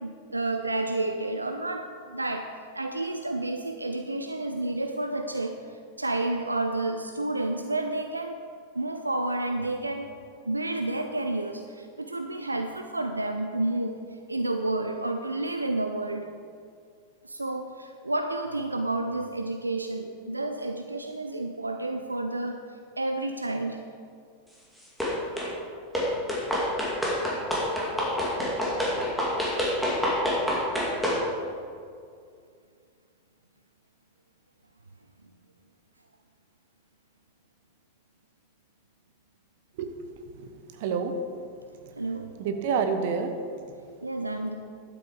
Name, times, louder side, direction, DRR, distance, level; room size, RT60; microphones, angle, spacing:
voice 1, 0.0-2.5 2.7-8.4 8.7-10.1 10.5-14.0 14.3-16.3 17.2-22.6 23.0-23.8 42.0-42.3 44.0-44.6, right 2 dB, 80° right, 5 dB, 0.5 m, -30 dB
sound 1, 25.0-25.5 25.9-31.2, left 1 dB, ahead, 2.5 m, -27 dB
voice 2, 40.3-41.2 42.4-43.4 43.9-44.0, right 5 dB, 50° right, 7 dB, 1.0 m, -29 dB
11.5 x 7.8 x 4.8 m, 2.3 s
figure-of-eight pair, 90°, 0 cm